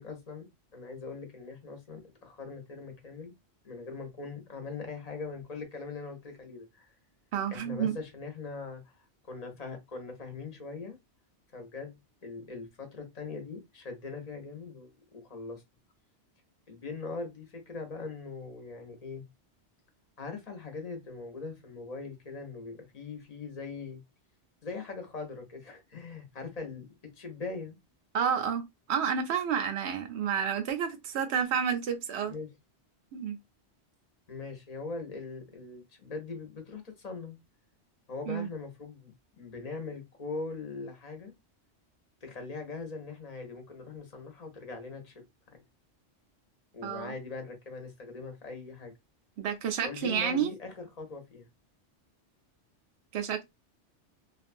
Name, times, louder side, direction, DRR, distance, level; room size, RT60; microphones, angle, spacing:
voice 1, 0.0-3.3 3.6-7.0 7.5-11.0 11.5-12.0 12.2-15.6 16.7-19.2 20.2-24.0 24.6-26.9 27.2-27.8 32.3-32.5 34.3-37.4 38.1-41.3 42.2-45.6 46.7-48.9 49.8-51.5, left 4 dB, 40° left, 0.8 m, -41 dB
voice 2, 7.3-8.0 28.1-32.3 33.1-33.4 38.3-38.5 46.8-47.1 49.4-50.5 53.1-53.4, right 7 dB, 75° right, 0.9 m, -30 dB
2.6 x 2.3 x 2.5 m
omnidirectional pair, 1.2 m